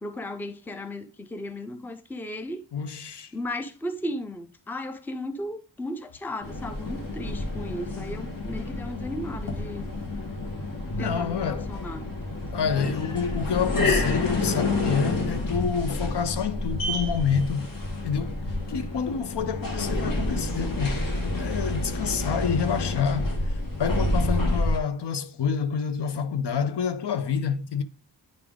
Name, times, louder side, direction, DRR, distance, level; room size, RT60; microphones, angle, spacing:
voice 1, 0.0-2.6 3.3-10.0 11.0-12.0, left 1 dB, 5° left, 0.4 m, -35 dB
voice 2, 2.7-3.3 11.0-11.7 12.5-17.7 18.0-21.0 21.3-27.8, left 7 dB, 70° left, 0.6 m, -28 dB
sound 1, 6.4-24.8, left 2 dB, 50° left, 1.2 m, -29 dB
9.2 x 3.4 x 3.5 m
wide cardioid pair, 135°, 43 cm